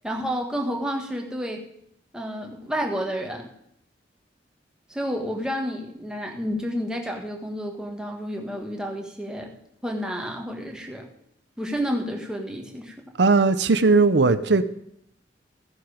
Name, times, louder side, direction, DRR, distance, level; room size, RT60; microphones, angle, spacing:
voice 1, 0.0-1.7 2.1-3.5 4.9-9.5 9.8-11.1 11.6-13.0, equal, 5° right, 1.7 m, -30 dB
voice 2, 13.2-14.6, right 3 dB, 75° right, 0.7 m, -18 dB
15.0 x 10.5 x 5.0 m
head